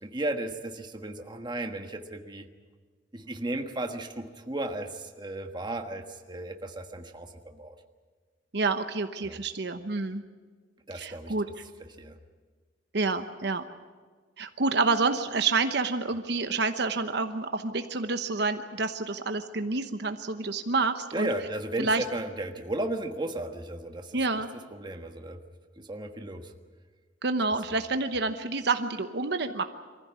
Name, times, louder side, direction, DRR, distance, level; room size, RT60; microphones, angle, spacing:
voice 1, 0.0-2.5 3.1-7.7 9.2-9.4 10.9-11.3 12.0-12.2 21.1-24.4 24.7-25.4 25.8-26.5, right 1 dB, 25° right, 5 dB, 1.4 m, -35 dB
voice 2, 8.5-10.2 10.9-11.5 12.9-13.6 14.4-21.3 21.8-22.0 24.1-24.5 27.2-29.6, right 3 dB, 65° right, 8 dB, 1.0 m, -28 dB
23.5 x 15.5 x 9.5 m, 1.5 s
head